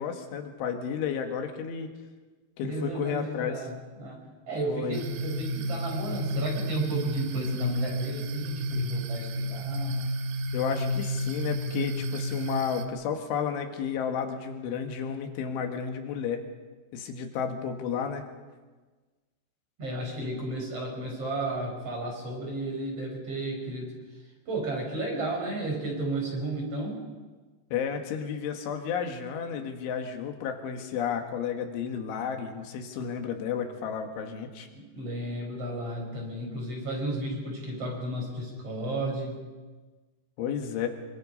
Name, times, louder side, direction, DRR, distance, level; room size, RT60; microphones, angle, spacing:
voice 1, 0.0-1.9 2.6-3.6 4.7-5.0 10.5-16.4 16.9-18.2 27.7-34.7 40.4-40.9, left 7 dB, 80° left, 5 dB, 4.3 m, -32 dB
voice 2, 2.6-4.2 4.5-10.1 19.8-23.9 24.5-27.0 34.7-39.4, right 2 dB, 30° right, 1 dB, 6.0 m, -33 dB
sound 1, 4.9-12.9, equal, 70° right, 2.7 m, -31 dB
26.0 x 23.0 x 5.6 m, 1.3 s
omnidirectional pair, 5.4 m